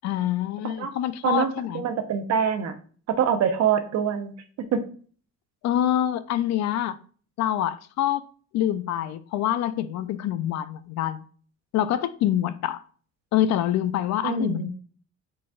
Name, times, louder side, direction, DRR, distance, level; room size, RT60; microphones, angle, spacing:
voice 1, 0.0-1.8 5.6-7.0 7.4-8.2 8.5-11.2 11.7-12.8 13.3-14.7, left 11 dB, 65° left, 0.4 m, -25 dB
voice 2, 1.7-2.7 3.1-4.3 4.7-4.8 14.2-14.7, right 7 dB, 60° right, 0.7 m, -24 dB
4.8 x 4.1 x 2.4 m
cardioid pair, 130°, 30 cm